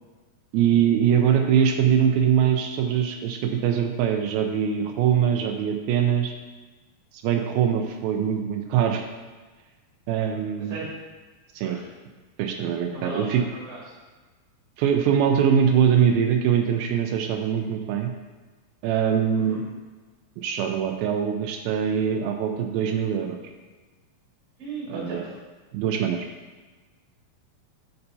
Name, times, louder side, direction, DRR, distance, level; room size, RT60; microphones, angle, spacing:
voice 1, 0.5-6.3 7.2-9.1 10.1-10.8 11.6-11.8 12.4-13.4 14.8-18.1 18.8-19.6 20.4-23.4 24.9-25.3 25.7-26.3, right 8 dB, 85° right, 4 dB, 2.4 m, -22 dB
voice 2, 10.6-11.0 11.6-11.8 12.9-13.9 19.3-19.7 24.6-25.4, right 2 dB, 30° right, -7 dB, 2.0 m, -36 dB
6.9 x 6.6 x 2.7 m, 1.3 s
omnidirectional pair, 4.2 m